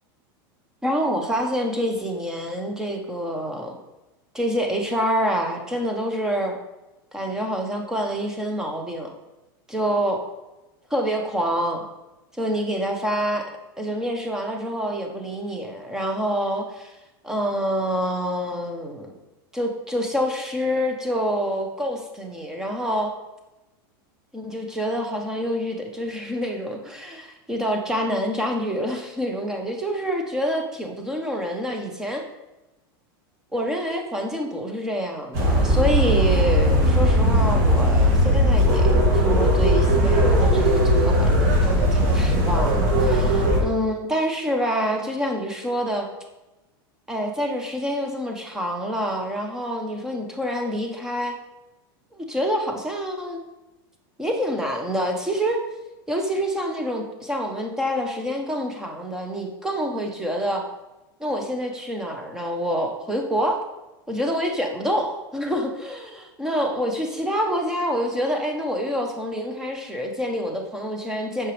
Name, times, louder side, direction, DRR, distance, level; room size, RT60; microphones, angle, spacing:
voice 1, 0.8-3.7 4.3-6.6 7.1-9.1 9.7-10.2 10.9-11.8 12.4-13.5 13.8-16.9 17.2-19.2 19.5-23.1 24.3-32.2 33.5-46.1 47.1-51.4 52.1-53.4 54.2-55.6 56.1-60.7 61.2-63.6 64.1-71.5, equal, 5° right, 2 dB, 0.8 m, -27 dB
sound 1, 35.3-43.6, equal, 45° right, 1.8 m, -18 dB
8.0 x 5.9 x 3.2 m, 1.0 s
supercardioid pair, 170°, 12 cm